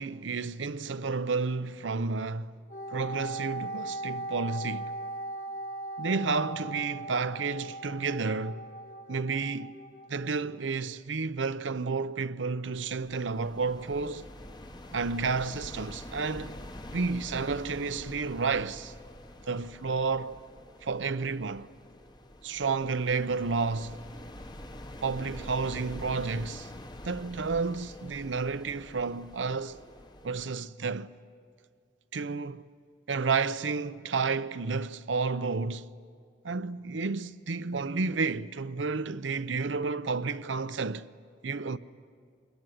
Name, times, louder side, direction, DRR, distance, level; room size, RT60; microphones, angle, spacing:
voice 1, 0.0-2.5 2.9-4.9 6.0-8.6 9.1-9.8 10.1-14.3 14.9-16.6 16.9-18.9 19.5-20.4 20.8-21.7 22.4-24.0 25.0-26.7 27.0-29.8 30.2-31.1 32.1-32.7 33.1-35.9 36.4-41.1 41.4-41.8, right 4 dB, 85° right, 0.7 m, -31 dB
Wind instrument woodwind instrument, 2.7-10.4, right 2 dB, 45° left, 1.4 m, -39 dB
sound 1, 12.7-30.5, left 1 dB, 25° left, 1.0 m, -46 dB
26.5 x 22.0 x 9.9 m
head